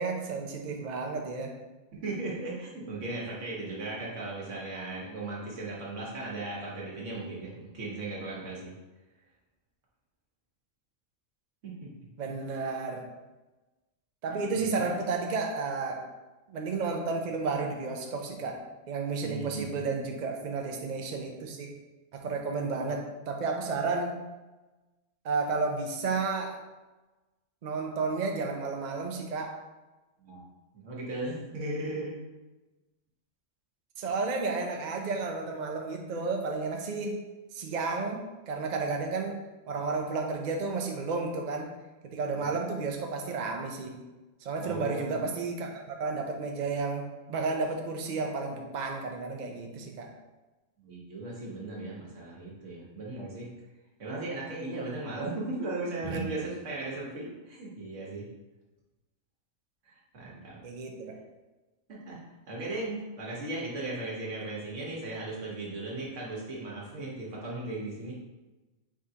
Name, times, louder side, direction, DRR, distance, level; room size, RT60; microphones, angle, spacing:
voice 1, 0.0-1.5 12.2-13.1 14.2-16.0 16.5-21.7 22.1-24.2 25.2-26.6 27.6-29.6 34.0-37.2 37.5-41.7 42.0-44.0 44.4-50.1 56.0-56.2 60.6-61.2, right 4 dB, 50° right, 2 dB, 0.6 m, -32 dB
voice 2, 2.0-8.7 11.6-11.7 12.0-12.1 14.3-14.9 19.2-19.8 22.8-22.9 30.2-30.4 30.7-32.2 42.3-42.5 44.6-45.2 50.8-53.5 54.0-58.3 59.8-60.6 61.9-62.2 62.5-68.1, right 2 dB, 80° right, -4 dB, 1.5 m, -37 dB
4.8 x 3.6 x 2.8 m, 1.1 s
omnidirectional pair, 1.2 m